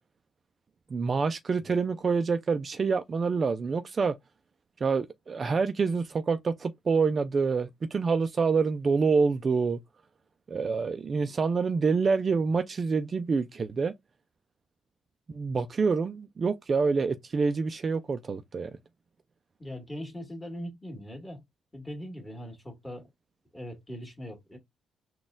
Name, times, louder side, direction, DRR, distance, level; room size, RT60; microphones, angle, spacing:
voice 1, 0.9-4.1 4.8-9.8 10.5-13.9 15.3-18.7, right 4 dB, 40° right, 0.4 m, -27 dB
voice 2, 19.6-21.4 21.7-23.1 23.5-24.6, equal, 15° left, 1.8 m, -40 dB
4.0 x 2.3 x 3.7 m
cardioid pair, 90°, 0 cm